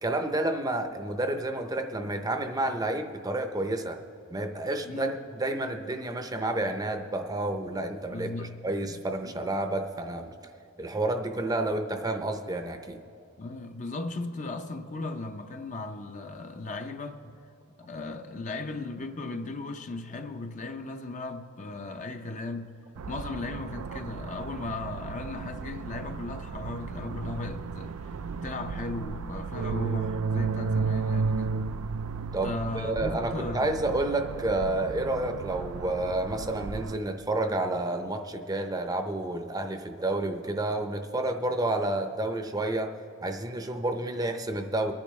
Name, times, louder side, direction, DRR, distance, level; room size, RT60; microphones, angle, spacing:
voice 1, 0.0-4.0 4.3-10.3 10.8-13.0 32.3-42.9 43.2-44.9, right 2 dB, 15° right, 0.6 m, -30 dB
voice 2, 8.1-9.0 13.4-17.4 17.8-22.8 23.1-31.6 32.4-33.8, left 2 dB, 35° left, 0.6 m, -37 dB
sound 1, 23.0-37.0, right 5 dB, 85° right, 0.4 m, -34 dB
24.0 x 10.5 x 3.2 m
head